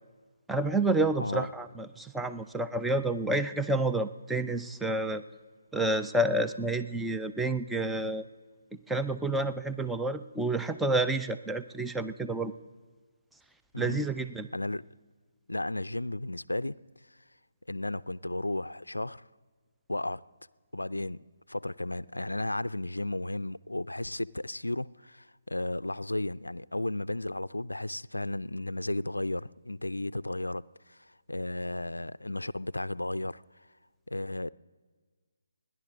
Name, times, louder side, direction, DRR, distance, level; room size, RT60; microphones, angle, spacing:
voice 1, 0.5-5.2 5.7-8.2 8.9-12.5 13.8-14.5, right 2 dB, 5° right, 0.4 m, -29 dB
voice 2, 14.5-14.8 15.5-16.8 17.7-19.2 19.9-20.2 20.7-33.7 34.1-34.5, left 1 dB, 80° left, 0.4 m, -34 dB
29.0 x 11.0 x 3.6 m
figure-of-eight pair, 145°, 0 cm